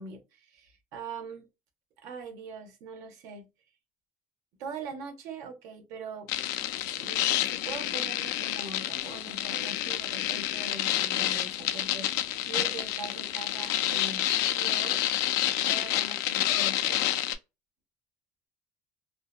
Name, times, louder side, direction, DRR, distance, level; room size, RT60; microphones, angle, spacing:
voice 1, 0.0-1.5 2.0-3.5 4.6-6.3 6.6-15.0 15.7-17.0, right 4 dB, 70° right, 0.6 m, -42 dB
sound 1, 6.3-17.4, left 13 dB, 75° left, 0.3 m, -29 dB
2.7 x 2.1 x 2.3 m
cardioid pair, 150°, 6 cm